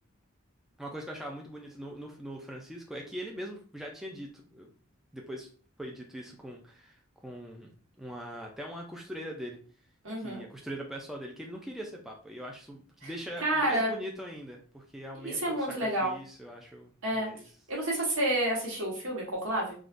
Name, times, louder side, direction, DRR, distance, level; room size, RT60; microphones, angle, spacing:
voice 1, 0.8-4.7 5.1-5.5 5.8-7.7 8.0-9.6 10.2-15.7 16.0-17.4, equal, ahead, 0 dB, 0.3 m, -41 dB
voice 2, 10.0-10.4 13.0-13.1 13.4-13.9 15.2-16.1 17.0-17.3 17.7-19.7, right 1 dB, 80° right, -3 dB, 1.2 m, -29 dB
3.5 x 2.4 x 2.4 m, 0.43 s
head